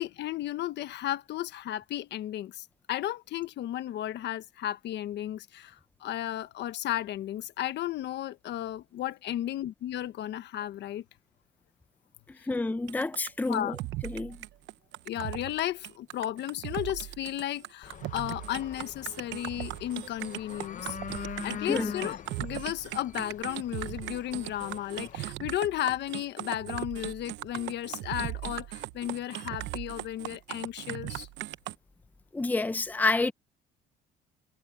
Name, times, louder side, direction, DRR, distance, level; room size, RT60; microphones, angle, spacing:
voice 1, 0.0-11.0 12.4-12.5 13.5-13.8 15.1-21.0 21.4-31.3, left 12 dB, 65° left, 1.3 m, -34 dB
voice 2, 12.5-13.7 14.0-14.4 21.7-21.9 32.3-33.3, left 3 dB, 10° left, 0.8 m, -28 dB
sound 1, 12.9-31.7, right 16 dB, 70° right, 0.9 m, -38 dB
sound 2, 17.8-25.2, left 8 dB, 40° left, 0.9 m, -43 dB
cardioid pair, 110°, 19 cm